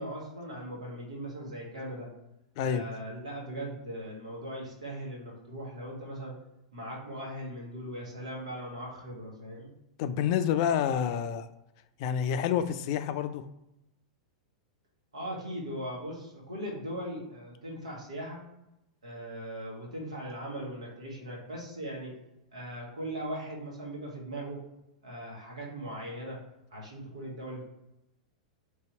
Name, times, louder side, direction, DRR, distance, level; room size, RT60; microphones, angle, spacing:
voice 1, 0.0-2.1 2.6-6.3 6.7-9.7 15.1-18.4 19.0-22.1 22.5-24.6 25.0-26.4 26.7-27.6, right 1 dB, 75° right, -2 dB, 1.5 m, -39 dB
voice 2, 10.0-11.5 12.0-13.4, left 8 dB, 45° left, 10 dB, 0.3 m, -28 dB
3.4 x 2.8 x 4.4 m, 0.89 s
figure-of-eight pair, 95°, 4 cm